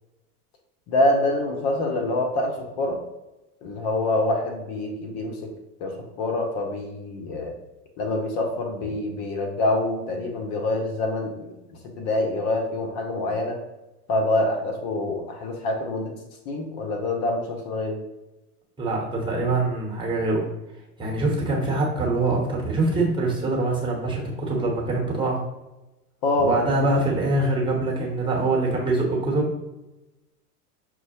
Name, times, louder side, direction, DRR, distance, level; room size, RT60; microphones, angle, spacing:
voice 1, 0.9-3.0 3.6-5.5 5.8-7.5 8.0-11.5 12.0-13.6 14.1-16.1 16.5-18.0 26.2-26.5, left 2 dB, 50° left, 3 dB, 0.9 m, -25 dB
voice 2, 18.8-20.5 21.0-25.4 26.4-29.5, right 2 dB, 10° right, -1 dB, 1.0 m, -24 dB
6.0 x 2.1 x 2.9 m, 1.0 s
hypercardioid pair, 100°, 47 cm